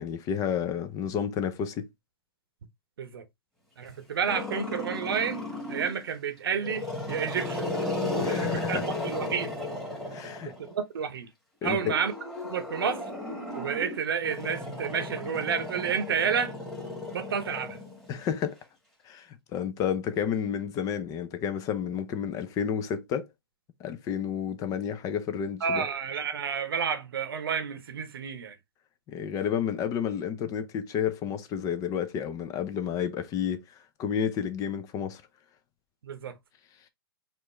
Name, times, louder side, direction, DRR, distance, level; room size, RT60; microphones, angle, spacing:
voice 1, 0.0-1.9 8.2-8.8 10.1-10.5 11.6-12.0 18.1-18.6 19.0-23.3 23.8-25.9 29.1-33.6 34.0-35.2, left 8 dB, 30° left, 0.6 m, -31 dB
voice 2, 3.8-5.4 5.7-7.7 8.3-8.8 9.0-9.5 10.5-11.3 11.6-12.1 12.5-13.0 13.5-16.5 17.1-17.8 25.6-28.5 36.0-36.4, right 7 dB, 70° right, 0.9 m, -30 dB
Growling, 4.3-6.0 6.6-10.7 11.7-18.2, left 2 dB, ahead, 1.6 m, -34 dB
4.4 x 2.6 x 3.2 m
hypercardioid pair, 115°, 13 cm